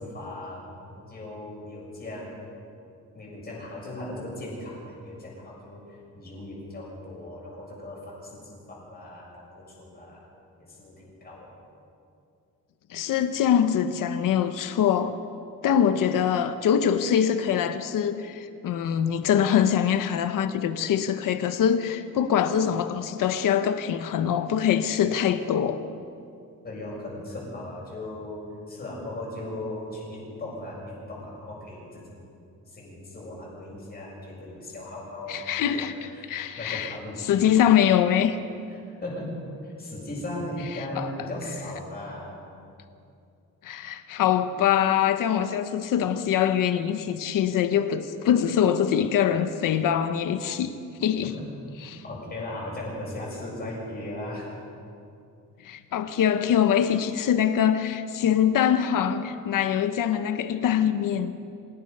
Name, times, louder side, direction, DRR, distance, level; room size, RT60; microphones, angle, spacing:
voice 1, 0.0-2.5 3.1-10.3 10.6-11.5 26.6-32.2 32.7-35.4 35.7-37.4 38.7-42.4 51.2-51.5 52.0-54.5, left 1 dB, 30° left, 7.3 m, -38 dB
voice 2, 12.9-15.1 15.6-25.8 35.3-36.9 37.2-38.4 41.0-41.1 43.6-51.3 51.8-52.0 55.6-61.3, left 9 dB, 85° left, 1.0 m, -23 dB
26.5 x 18.0 x 5.6 m
wide cardioid pair, 175°, 32 cm